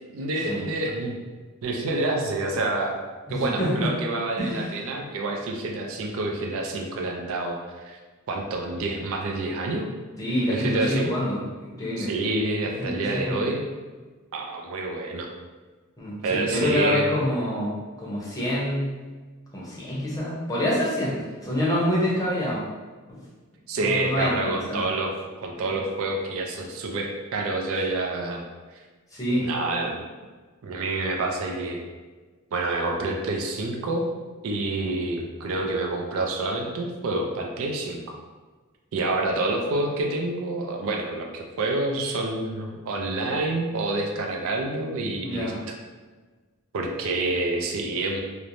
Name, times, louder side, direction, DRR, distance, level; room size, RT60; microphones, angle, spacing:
voice 1, 0.1-1.1 1.6-3.0 3.3-8.0 8.3-9.9 10.5-11.1 12.0-13.6 14.3-15.3 16.2-17.1 23.7-25.1 25.4-28.4 29.4-30.0 30.6-31.8 32.5-34.1 34.4-38.0 38.9-45.7 46.7-48.2, right 2 dB, 65° right, 1 dB, 0.4 m, -28 dB
voice 2, 3.3-3.9 4.4-4.7 10.2-12.1 12.8-13.5 16.0-18.9 19.5-22.6 23.1-23.2 23.8-24.8 25.6-25.7 29.1-29.5 45.2-45.6, left 1 dB, 15° left, -6 dB, 0.7 m, -27 dB
3.0 x 2.0 x 2.5 m, 1.4 s
head